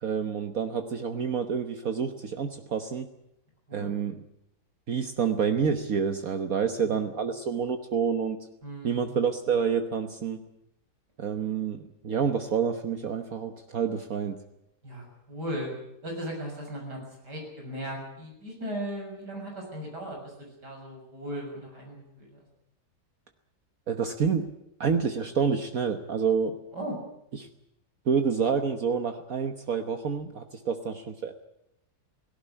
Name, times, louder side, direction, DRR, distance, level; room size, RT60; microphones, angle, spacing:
voice 1, 0.0-3.1 3.7-4.1 4.9-8.5 8.8-10.4 11.2-14.4 23.9-24.5 24.8-26.6 27.4-27.5 28.1-31.3, right 6 dB, 60° right, 7 dB, 1.5 m, -28 dB
voice 2, 8.6-9.2 14.8-15.7 16.0-22.5 26.7-27.0, equal, 85° right, 0 dB, 7.3 m, -37 dB
18.0 x 17.0 x 9.9 m, 0.81 s
omnidirectional pair, 1.7 m